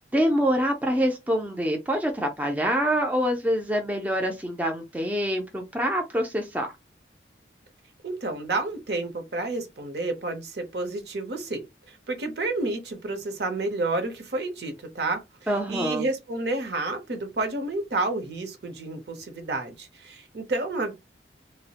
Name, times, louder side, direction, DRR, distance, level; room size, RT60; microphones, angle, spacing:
voice 1, 0.1-6.7 15.5-16.0, equal, 10° right, 0.3 m, -25 dB
voice 2, 8.0-15.2 15.7-20.9, right 2 dB, 65° right, 0.7 m, -30 dB
2.3 x 2.0 x 2.8 m
head